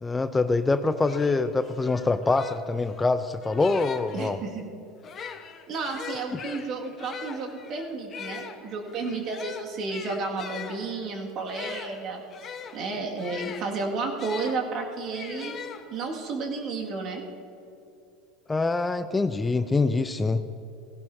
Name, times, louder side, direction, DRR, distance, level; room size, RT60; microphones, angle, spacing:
voice 1, 0.0-4.4 18.5-20.4, left 3 dB, 15° left, 11 dB, 0.5 m, -25 dB
sound 1, 0.6-0.7 1.0-4.3 5.0-14.6 15.1-16.2, left 6 dB, 35° left, 1.1 m, -41 dB
voice 2, 4.1-4.6 5.7-15.5 15.9-17.2, right 3 dB, 45° right, 1 dB, 2.0 m, -32 dB
17.5 x 16.5 x 2.7 m, 2.6 s
hypercardioid pair, 75°, 0 cm